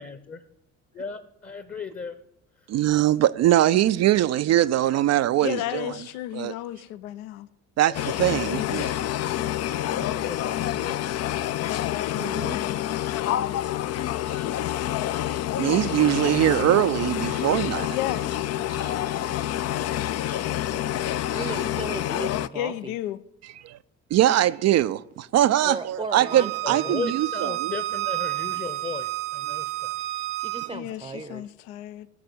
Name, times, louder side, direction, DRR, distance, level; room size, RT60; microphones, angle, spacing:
voice 1, 0.0-0.4 0.9-2.2 2.6-2.7 5.7-6.0 7.9-8.0 9.6-11.2 26.6-29.9, left 4 dB, 20° left, 1.0 m, -37 dB
voice 2, 2.7-5.8 6.3-6.5 7.8-8.9 14.3-14.4 15.6-18.0 18.7-18.9 24.1-27.7, right 13 dB, 40° right, 0.5 m, -22 dB
voice 3, 5.4-7.5 8.5-8.8 11.7-12.8 13.3-13.6 17.9-18.3 22.5-23.2 30.7-32.1, left 13 dB, 70° left, 0.7 m, -33 dB
sound 1, 7.9-22.5, left 12 dB, 35° left, 0.5 m, -28 dB
voice 4, 12.2-12.6 15.7-15.9 21.3-22.9 25.6-26.9 30.4-31.5, right 3 dB, 10° right, 0.8 m, -36 dB
Bowed string instrument, 26.2-30.7, right 17 dB, 70° right, 0.9 m, -30 dB
17.5 x 6.7 x 7.9 m
figure-of-eight pair, 45°, 44 cm